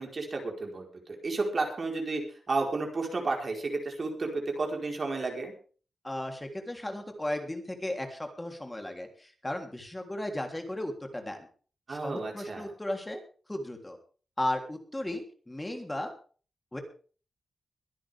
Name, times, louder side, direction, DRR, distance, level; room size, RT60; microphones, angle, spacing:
voice 1, 0.0-2.2 2.5-5.5 11.9-12.7, right 3 dB, 45° right, 1 dB, 4.7 m, -32 dB
voice 2, 6.0-11.5 11.9-13.2 13.5-14.0 14.4-16.1 16.7-16.8, left 1 dB, 15° left, 4 dB, 3.5 m, -35 dB
22.5 x 10.0 x 3.7 m, 0.40 s
wide cardioid pair, 95°, 0 cm